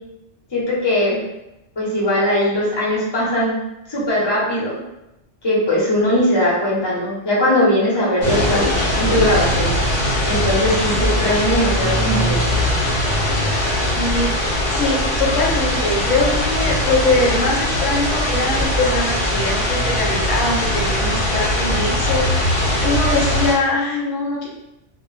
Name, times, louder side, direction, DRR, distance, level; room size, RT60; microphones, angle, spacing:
voice 1, 0.5-1.2 1.8-3.6 3.9-4.7 5.4-8.7 9.0-9.7 10.3-12.6, left 1 dB, 25° left, -6 dB, 0.7 m, -19 dB
sound 1, 8.2-23.5, left 1 dB, 55° left, 0.9 m, -20 dB
voice 2, 14.0-14.4 14.7-24.5, left 2 dB, 85° left, -1 dB, 0.9 m, -22 dB
2.1 x 2.1 x 3.0 m, 0.90 s
omnidirectional pair, 1.3 m